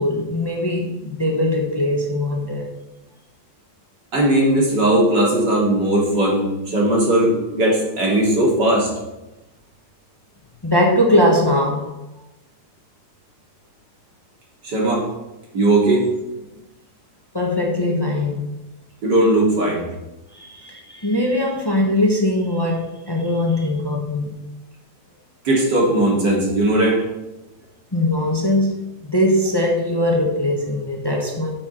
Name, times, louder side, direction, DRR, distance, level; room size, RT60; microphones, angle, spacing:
voice 1, 0.0-2.7 10.6-11.9 17.3-18.5 20.3-24.4 27.9-31.5, left 1 dB, 15° left, 0 dB, 1.1 m, -20 dB
voice 2, 4.1-8.9 14.6-15.0 15.5-16.1 19.0-19.8 25.4-27.0, right 1 dB, 85° right, -3 dB, 3.3 m, -18 dB
11.5 x 6.4 x 4.5 m, 0.99 s
omnidirectional pair, 1.8 m